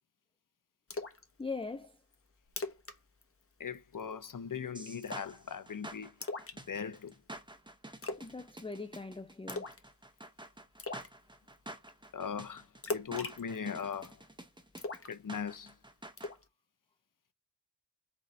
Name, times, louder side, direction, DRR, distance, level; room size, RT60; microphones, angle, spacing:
Splash splatter, 0.9-1.2 1.6-1.7 2.1-2.2 2.5-3.0 3.2-3.4 3.7-4.1 5.0-5.4 6.2-7.1 8.0-8.3 8.6-9.0 9.5-9.9 10.2-10.3 10.8-11.1 12.8-14.1 14.8-15.7 16.2-16.4, left 3 dB, 30° left, 1.0 m, -39 dB
voice 1, 1.4-1.9 8.2-9.7, left 3 dB, 15° left, 0.4 m, -40 dB
voice 2, 3.6-6.1 6.7-7.1 12.1-14.2 15.1-15.7, left 7 dB, 45° left, 0.7 m, -39 dB
sound 1, 4.7-16.3, right 1 dB, 10° right, 0.8 m, -48 dB
4.1 x 3.1 x 4.1 m
wide cardioid pair, 85°, 44 cm